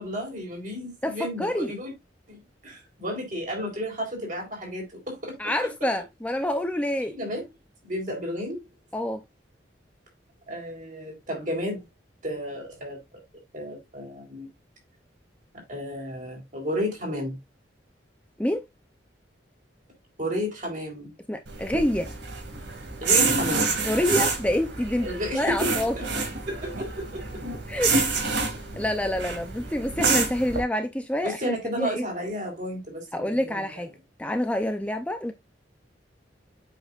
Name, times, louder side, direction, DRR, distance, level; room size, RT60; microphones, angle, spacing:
voice 1, 0.0-1.9 2.3-5.4 7.1-7.5 7.8-8.6 10.5-11.9 12.2-13.0 13.5-14.5 15.5-17.4 20.2-21.1 23.0-23.8 25.0-27.4 28.7-28.8 31.2-33.8, equal, 45° right, 4.0 m, -32 dB
voice 2, 1.0-1.7 5.4-7.1 8.9-9.2 18.4-18.6 21.3-22.1 23.8-25.1 25.3-25.9 27.7-28.1 28.8-32.1 33.1-33.9 34.2-35.3, left 1 dB, 5° left, 0.5 m, -27 dB
sound 1, 21.5-30.6, right 4 dB, 80° right, 2.5 m, -27 dB
8.0 x 6.2 x 2.4 m
head